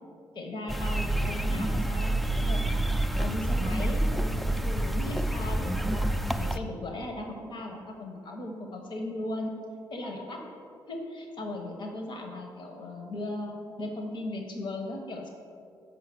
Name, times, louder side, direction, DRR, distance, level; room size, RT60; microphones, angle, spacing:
voice 1, 0.3-2.8 3.2-9.5 9.9-10.4 10.9-15.3, left 1 dB, 55° left, 2 dB, 1.4 m, -37 dB
sound 1, 0.7-6.6, right 1 dB, ahead, 0.5 m, -28 dB
7.0 x 5.5 x 6.2 m, 2.4 s
hypercardioid pair, 50°, 9 cm